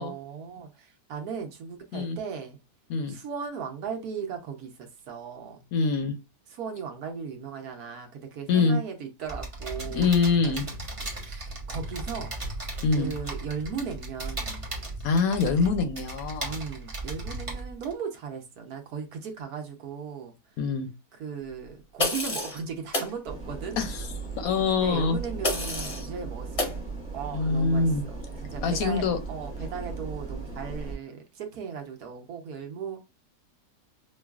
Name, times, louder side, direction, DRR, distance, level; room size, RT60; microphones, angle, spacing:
voice 1, 0.0-2.6 3.1-5.6 6.5-10.1 10.4-10.5 11.2-12.3 12.9-14.6 16.4-20.3 21.1-23.8 24.7-33.0, right 6 dB, 65° right, 1.2 m, -37 dB
voice 2, 5.7-6.1 8.5-8.8 9.9-10.7 12.8-13.1 15.0-16.6 20.6-20.9 23.8-24.1 24.4-25.2 27.3-28.0 28.6-29.2, left 4 dB, 70° left, 0.9 m, -24 dB
sound 1, 9.3-17.9, right 2 dB, 35° right, 0.5 m, -36 dB
sound 2, 22.0-22.6 22.9-23.1 25.4-26.1 26.6-26.8, left 2 dB, 30° left, 0.6 m, -28 dB
sound 3, 23.2-31.0, right 4 dB, 5° left, 1.0 m, -37 dB
5.3 x 2.3 x 2.3 m
omnidirectional pair, 1.8 m